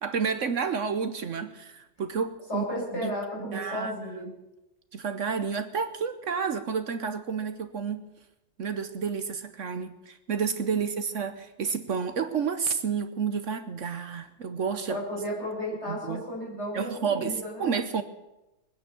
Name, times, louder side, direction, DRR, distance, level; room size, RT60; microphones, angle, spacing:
voice 1, 0.0-2.7 2.9-3.1 3.4-3.9 4.9-8.0 8.6-15.0 15.9-16.2 16.7-18.0, right 6 dB, 55° right, 10 dB, 1.0 m, -30 dB
voice 2, 2.5-4.3 10.7-10.8 14.9-17.7, equal, 35° left, -4 dB, 7.3 m, -34 dB
20.5 x 9.8 x 6.9 m, 0.99 s
omnidirectional pair, 1.9 m